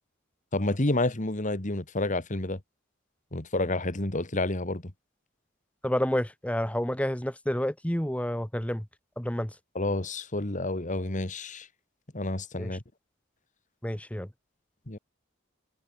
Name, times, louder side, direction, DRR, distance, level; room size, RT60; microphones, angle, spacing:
voice 1, 0.5-2.6 3.3-4.8 9.8-11.7 12.1-12.8 14.9-15.0, left 2 dB, 40° left, 1.8 m, -29 dB
voice 2, 5.8-8.8 9.2-9.5 12.6-12.8 13.8-14.3, equal, 5° left, 1.3 m, -29 dB
head